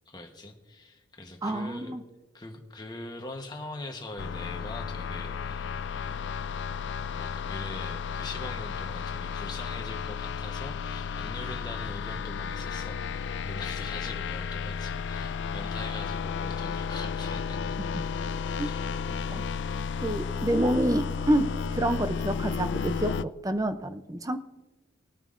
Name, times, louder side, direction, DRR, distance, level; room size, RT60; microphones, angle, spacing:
voice 1, 0.1-1.9 2.3-6.3 7.1-17.6 18.6-18.8, left 2 dB, 20° left, 3 dB, 1.0 m, -42 dB
voice 2, 1.4-2.0 18.6-18.7 19.1-19.4 20.0-24.4, right 1 dB, 15° right, 9 dB, 0.5 m, -28 dB
sound 1, 4.2-23.2, left 6 dB, 65° left, 0.3 m, -33 dB
20.5 x 9.0 x 2.5 m, 1.1 s
head